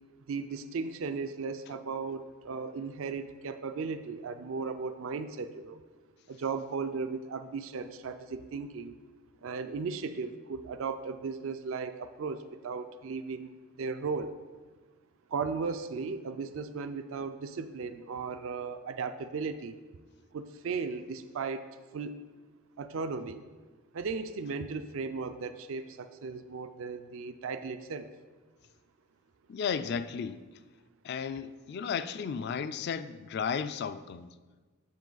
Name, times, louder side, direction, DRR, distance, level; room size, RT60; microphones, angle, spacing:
voice 1, 0.3-5.8 6.3-8.9 9.4-14.4 15.3-19.8 20.3-21.7 21.9-22.2 22.8-23.4 23.9-28.1, right 4 dB, 65° right, 0.4 m, -36 dB
voice 2, 29.5-30.4 31.0-34.3, left 6 dB, 50° left, 0.3 m, -34 dB
7.4 x 7.3 x 3.9 m
head